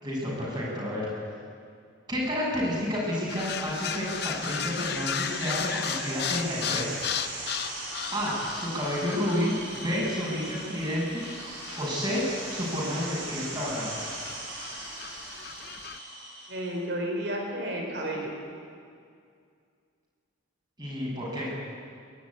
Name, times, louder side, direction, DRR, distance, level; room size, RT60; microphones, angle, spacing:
voice 1, 0.0-1.1 2.1-7.0 8.1-11.2 11.8-12.2 12.5-14.1 20.8-21.5, equal, 20° right, -4 dB, 7.2 m, -30 dB
sound 1, 3.0-16.8, right 2 dB, 85° right, 7.9 m, -39 dB
sound 2, 3.3-16.0, left 9 dB, 50° left, 0.7 m, -37 dB
voice 2, 16.5-18.3, right 1 dB, 60° right, 1 dB, 4.9 m, -32 dB
22.5 x 13.0 x 9.9 m, 2.2 s
head